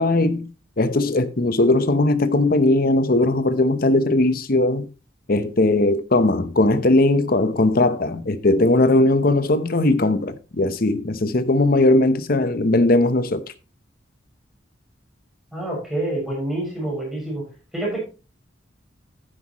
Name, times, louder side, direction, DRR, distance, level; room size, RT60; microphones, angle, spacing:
voice 1, 0.0-4.9 5.3-13.5, left 2 dB, 50° left, 0.9 m, -19 dB
voice 2, 15.5-17.4 17.7-18.0, right 1 dB, ahead, 6.5 m, -27 dB
11.5 x 10.0 x 3.1 m
head